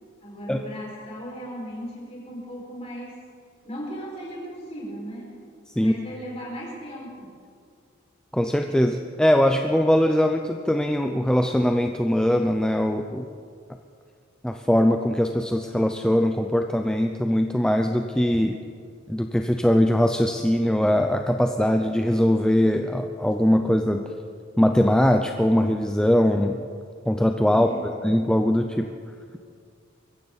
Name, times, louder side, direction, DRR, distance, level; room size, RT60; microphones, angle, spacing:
voice 1, 0.2-3.2 3.6-5.4 5.7-7.3 27.5-27.9, equal, 30° left, -4 dB, 5.2 m, -37 dB
voice 2, 8.3-13.2 14.4-18.6 19.1-24.0 24.6-26.6 27.1-27.7 28.0-28.9, equal, 5° left, 5 dB, 0.5 m, -21 dB
22.5 x 15.0 x 4.1 m, 2.2 s
head